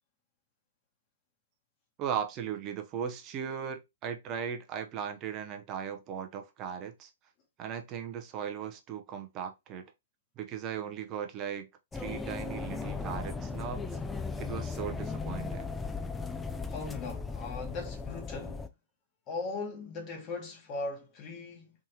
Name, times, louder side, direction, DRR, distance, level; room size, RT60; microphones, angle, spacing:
voice 1, 2.0-7.1 7.6-9.8 10.4-11.7 11.9-14.0 14.4-15.8, right 8 dB, 30° right, 0.6 m, -37 dB
sound 1, 11.9-18.7, left 4 dB, 10° left, 0.3 m, -37 dB
voice 2, 16.7-18.6 19.3-21.7, left 3 dB, 30° left, 1.0 m, -39 dB
3.6 x 2.7 x 2.8 m
figure-of-eight pair, 115°, 0 cm